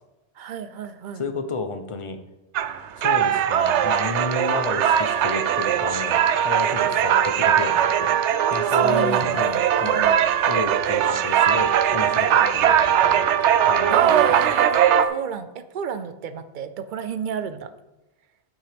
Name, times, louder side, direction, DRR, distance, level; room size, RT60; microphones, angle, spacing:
voice 1, 0.4-1.2 6.9-7.2 8.7-10.3 12.1-12.5 13.9-17.7, right 7 dB, 55° right, 11 dB, 0.7 m, -33 dB
voice 2, 1.1-2.2 3.0-8.2 8.5-10.0 10.5-13.2 13.7-14.5, left 3 dB, 35° left, 8 dB, 0.7 m, -31 dB
sound 1, 2.5-15.1, right 9 dB, 90° right, 0.9 m, -20 dB
9.2 x 7.4 x 3.5 m, 1.0 s
omnidirectional pair, 1.1 m